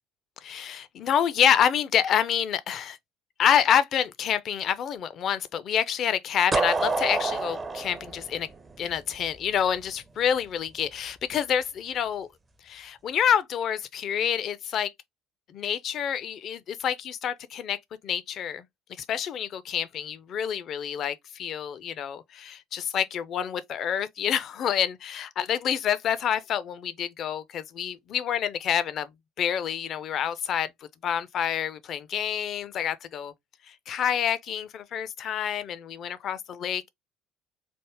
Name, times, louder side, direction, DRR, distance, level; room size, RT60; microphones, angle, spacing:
voice 1, 0.4-3.0 3.4-8.5 8.8-12.3 12.7-14.9 15.5-17.8 18.0-18.6 19.0-29.1 29.4-30.7 31.0-33.3 33.9-36.9, left 9 dB, 50° left, 0.5 m, -27 dB
sound 1, 6.5-9.4, right 3 dB, 25° right, 0.5 m, -28 dB
3.4 x 2.1 x 3.2 m
hypercardioid pair, 60°, 0 cm